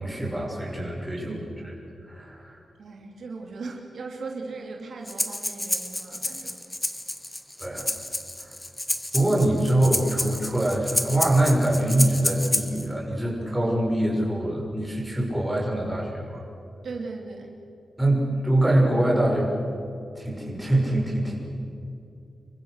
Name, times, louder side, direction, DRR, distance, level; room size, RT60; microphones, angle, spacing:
voice 1, 0.0-1.8 2.0-2.6 7.6-7.9 8.4-8.5 9.1-16.4 18.0-19.5 20.1-21.3, right 1 dB, 5° right, -3 dB, 6.2 m, -24 dB
voice 2, 1.2-1.5 2.8-6.6 16.8-17.5, right 3 dB, 65° right, 1 dB, 3.0 m, -38 dB
Breathing, 5.1-12.9, left 1 dB, 10° left, 1.4 m, -30 dB
28.5 x 23.5 x 6.7 m, 2.7 s
wide cardioid pair, 175°, 0 cm